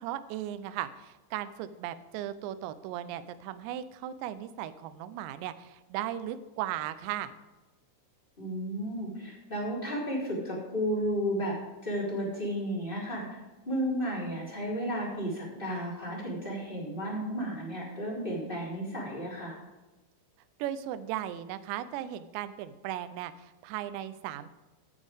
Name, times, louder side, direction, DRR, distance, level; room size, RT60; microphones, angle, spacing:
voice 1, 0.0-7.3 20.6-24.5, right 12 dB, 80° right, 12 dB, 2.8 m, -37 dB
voice 2, 8.4-11.5 11.8-13.2 13.6-19.6, equal, 10° left, -6 dB, 3.3 m, -33 dB
14.5 x 8.4 x 3.6 m, 1.1 s
omnidirectional pair, 5.3 m